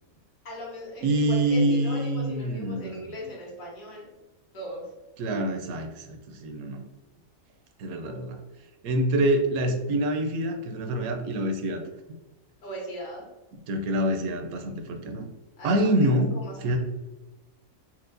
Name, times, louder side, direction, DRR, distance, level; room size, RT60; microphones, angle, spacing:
voice 1, 0.4-4.1 4.5-4.9 12.6-13.3 15.6-15.9 16.3-16.8, equal, 70° left, -4 dB, 1.6 m, -38 dB
voice 2, 1.0-3.0 5.2-6.8 7.8-8.4 8.8-11.8 13.7-15.3 15.6-16.3 16.6-16.8, right 1 dB, 85° right, 4 dB, 1.0 m, -26 dB
4.5 x 2.0 x 2.5 m, 1.1 s
omnidirectional pair, 1.5 m